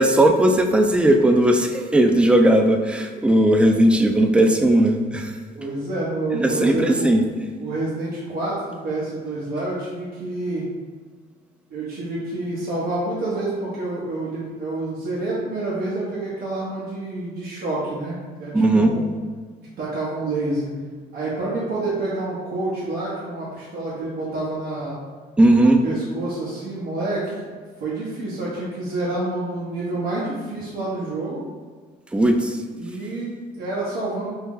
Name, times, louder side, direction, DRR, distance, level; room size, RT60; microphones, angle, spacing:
voice 1, 0.0-5.3 6.3-7.3 18.5-18.9 25.4-25.8 32.1-32.6, right 1 dB, 5° right, 4 dB, 0.3 m, -17 dB
voice 2, 5.6-7.2 7.6-10.7 11.7-19.1 19.8-20.7 21.1-25.0 25.6-31.4 32.6-34.3, right 2 dB, 70° right, -8 dB, 0.9 m, -28 dB
3.0 x 2.8 x 3.6 m, 1.5 s
cardioid pair, 110°, 17 cm